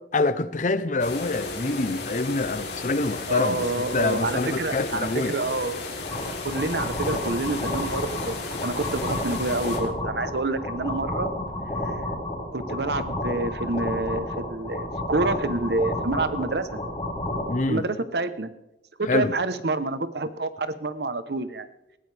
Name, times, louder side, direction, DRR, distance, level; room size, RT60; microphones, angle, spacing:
voice 1, 0.1-3.6 3.9-5.4 17.5-17.8 19.0-19.4, left 3 dB, 45° left, 0.7 m, -26 dB
sound 1, 1.0-9.8, left 3 dB, 75° left, 3.5 m, -35 dB
voice 2, 3.3-5.8 6.4-11.3 11.8-11.9 12.5-16.8 17.7-18.5 19.0-21.7, right 2 dB, 65° right, 0.9 m, -28 dB
sound 2, 6.0-17.6, left 1 dB, 25° left, 5.4 m, -31 dB
19.0 x 15.5 x 3.4 m
head